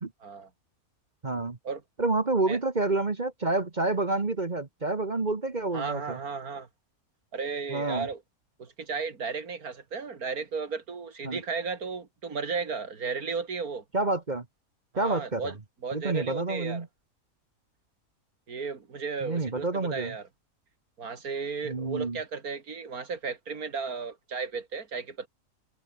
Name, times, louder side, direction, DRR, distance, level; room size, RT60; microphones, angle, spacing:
voice 1, 1.2-1.6 2.0-6.2 7.7-8.1 11.2-11.4 13.9-14.4 15.0-15.5 15.9-16.9 19.2-20.1 21.6-22.2, right 2 dB, 30° right, 1.5 m, -28 dB
voice 2, 5.7-6.7 7.3-8.2 8.6-13.8 14.9-15.6 15.8-16.8 18.5-20.3 21.0-25.3, right 5 dB, 90° right, 2.8 m, -34 dB
omnidirectional pair, 1.5 m